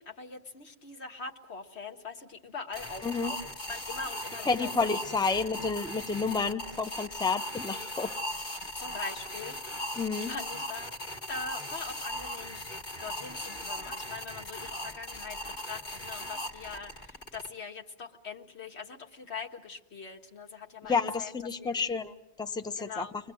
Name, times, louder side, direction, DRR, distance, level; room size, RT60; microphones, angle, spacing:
voice 1, 0.0-3.4 3.7-5.0 8.8-9.6 10.1-10.9 11.3-12.6 13.0-21.3 21.6-21.7 22.8-23.2, left 4 dB, 85° left, 3 dB, 1.9 m, -42 dB
sound 1, 2.7-17.5, left 1 dB, 45° left, 1.5 m, -39 dB
voice 2, 3.0-3.3 4.5-8.1 10.0-10.3 20.9-22.1 22.4-23.1, left 4 dB, 5° left, 7 dB, 0.7 m, -30 dB
29.5 x 21.5 x 7.7 m, 0.92 s
omnidirectional pair, 1.1 m